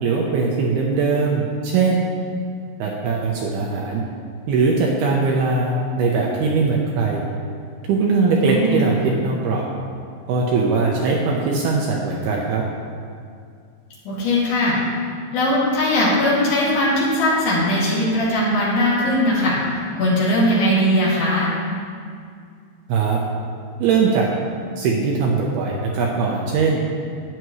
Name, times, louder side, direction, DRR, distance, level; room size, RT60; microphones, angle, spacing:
voice 1, 0.0-2.0 2.8-4.0 4.5-7.2 7.9-9.7 10.3-12.6 22.9-23.2 23.8-24.3 24.8-26.8, right 4 dB, 75° right, -2 dB, 2.5 m, -20 dB
voice 2, 8.5-9.0 14.1-14.7 15.3-19.6 19.9-21.5, left 1 dB, 60° left, -7 dB, 3.9 m, -19 dB
12.5 x 9.6 x 3.1 m, 2.2 s
omnidirectional pair, 5.1 m